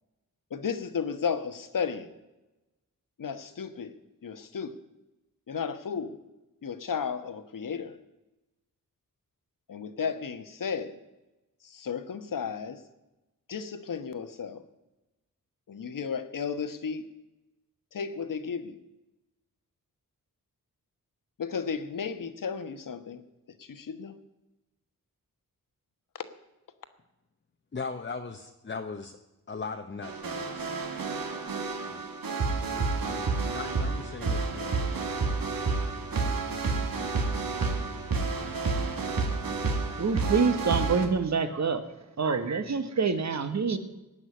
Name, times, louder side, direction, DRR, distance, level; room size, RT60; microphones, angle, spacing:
voice 1, 0.5-2.1 3.2-4.0 4.2-4.8 5.5-6.2 6.6-8.0 9.7-11.0 11.6-12.8 13.5-14.6 15.7-17.1 17.9-18.8 21.4-23.2 23.6-24.1 26.1-26.2, left 6 dB, 65° left, 10 dB, 1.3 m, -34 dB
voice 2, 27.7-29.2 29.5-30.7 31.8-32.0 32.6-34.8, left 4 dB, 30° left, 5 dB, 1.0 m, -39 dB
sound 1, 30.0-41.1, right 4 dB, 75° right, 2.1 m, -30 dB
voice 3, 39.9-41.8 42.2-43.8, right 5 dB, 50° right, 10 dB, 1.4 m, -26 dB
18.0 x 6.2 x 9.8 m, 1.0 s
wide cardioid pair, 90°, 35 cm